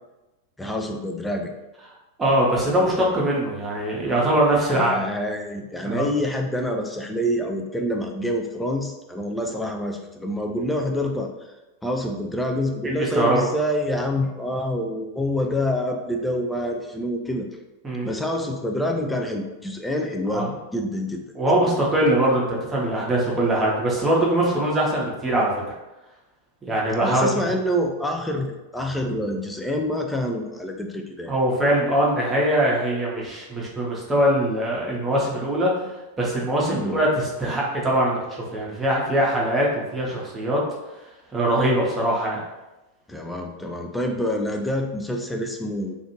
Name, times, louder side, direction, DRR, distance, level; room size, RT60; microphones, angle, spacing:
voice 1, 0.6-1.5 4.7-11.5 11.8-17.5 18.0-21.2 21.5-21.7 27.0-31.3 36.7-37.0 43.1-45.9, left 1 dB, 5° left, 2 dB, 0.3 m, -27 dB
voice 2, 2.2-5.0 5.8-6.1 13.0-13.5 17.8-18.1 20.3-20.5 21.3-25.6 26.6-27.3 31.3-35.9 36.2-40.6 41.3-42.4, right 1 dB, 15° right, -4 dB, 0.8 m, -22 dB
2.5 x 2.4 x 2.9 m, 1.0 s
figure-of-eight pair, 90°, 0 cm